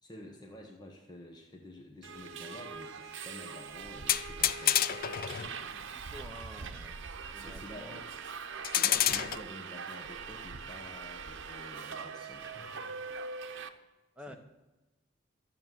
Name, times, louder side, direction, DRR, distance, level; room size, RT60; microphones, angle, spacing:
voice 1, 0.0-5.1 7.4-8.1 8.6-13.0 14.3-14.4, left 1 dB, 20° left, 0 dB, 1.3 m, -49 dB
Subway metro underground, 2.0-13.7, right 5 dB, 65° right, 0.9 m, -42 dB
sound 1, 4.1-5.5 8.6-9.4, left 11 dB, 45° left, 0.5 m, -28 dB
voice 2, 5.6-6.9 7.3-8.0 14.1-14.4, left 1 dB, 5° right, 2 dB, 1.2 m, -50 dB
12.5 x 7.6 x 9.2 m, 1.1 s
head